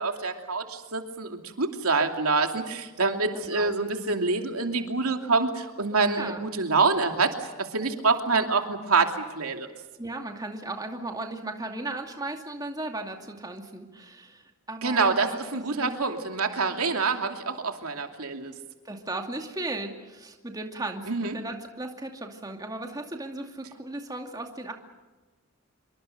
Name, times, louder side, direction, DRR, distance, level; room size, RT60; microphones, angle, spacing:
voice 1, 0.0-7.3 7.6-9.7 14.8-18.5 21.1-21.3, right 4 dB, 90° right, 4 dB, 2.8 m, -26 dB
voice 2, 3.3-3.7 6.2-6.4 10.0-16.0 18.8-24.7, right 2 dB, 15° right, 3 dB, 2.4 m, -36 dB
26.5 x 24.0 x 6.8 m, 1.2 s
head